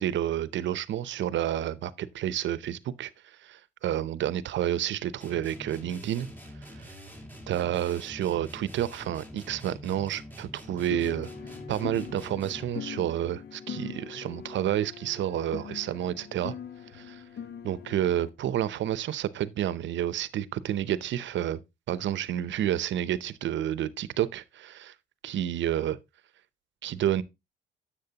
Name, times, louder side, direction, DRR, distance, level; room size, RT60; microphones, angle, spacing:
voice 1, 0.0-3.1 3.4-6.3 6.9-7.0 7.5-11.3 11.7-16.5 16.9-17.2 17.6-21.6 21.9-24.9 25.2-26.0 26.8-27.2, right 11 dB, 70° right, 0.7 m, -30 dB
sound 1, 5.2-12.9, equal, 10° left, 2.3 m, -45 dB
sound 2, 10.9-18.3, left 7 dB, 60° left, 1.2 m, -41 dB
10.5 x 7.5 x 2.8 m
cardioid pair, 90°, 20 cm